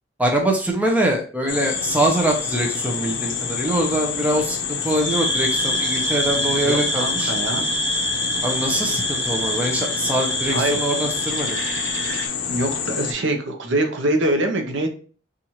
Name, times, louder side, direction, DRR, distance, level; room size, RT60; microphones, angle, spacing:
voice 1, 0.2-7.3 8.4-11.6, right 1 dB, 5° right, 1 dB, 0.5 m, -23 dB
sound 1, 1.5-13.1, left 7 dB, 70° left, 0.6 m, -28 dB
sound 2, 1.6-12.3, right 1 dB, 35° right, 1.0 m, -28 dB
voice 2, 6.6-7.7 10.5-10.8 12.5-14.9, right 1 dB, 70° right, 4 dB, 0.7 m, -23 dB
4.3 x 2.4 x 2.8 m, 0.39 s
head